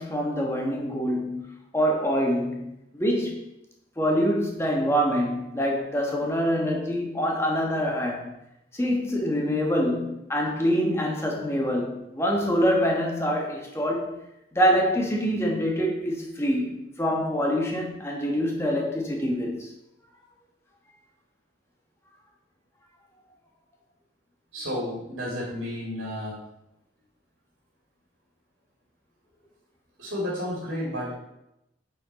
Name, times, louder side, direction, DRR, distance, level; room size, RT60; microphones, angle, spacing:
voice 1, 0.0-3.4 4.0-8.3 8.7-14.2 14.5-19.7, equal, 15° left, 0 dB, 1.2 m, -25 dB
voice 2, 24.5-26.3 30.0-31.1, left 1 dB, 85° right, -5 dB, 2.4 m, -31 dB
9.0 x 4.3 x 4.1 m, 0.87 s
head